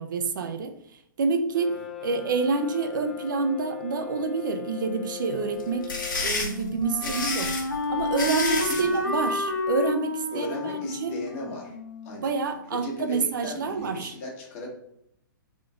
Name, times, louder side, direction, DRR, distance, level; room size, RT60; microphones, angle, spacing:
voice 1, 0.0-5.9 6.2-7.5 7.9-11.2 12.2-14.1, right 4 dB, 65° right, 0.6 m, -28 dB
Brass instrument, 1.5-6.4, left 12 dB, 5° left, 0.3 m, -39 dB
sound 1, 5.6-8.9, left 3 dB, 65° left, 1.3 m, -30 dB
Wind instrument woodwind instrument, 5.9-12.8, left 3 dB, 85° left, 1.0 m, -31 dB
voice 2, 8.5-9.0 10.3-11.8 12.0-12.3 12.7-14.7, left 2 dB, 40° left, 1.4 m, -36 dB
3.7 x 2.5 x 3.4 m
hypercardioid pair, 125°, 11 cm